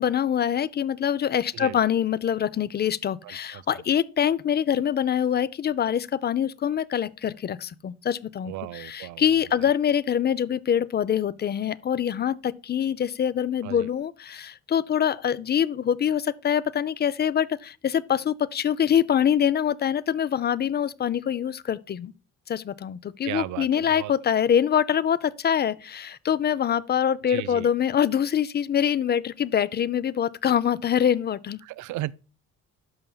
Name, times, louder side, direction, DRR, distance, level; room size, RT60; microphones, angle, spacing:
voice 1, 0.0-22.1 22.5-31.6, left 9 dB, 35° left, 0.5 m, -24 dB
voice 2, 3.2-3.6 8.5-9.2 9.6-9.7 13.6-13.9 23.2-24.1 27.3-27.7 31.6-32.1, right 16 dB, 75° right, 0.4 m, -35 dB
12.5 x 5.4 x 2.2 m
cardioid pair, 90°, 30 cm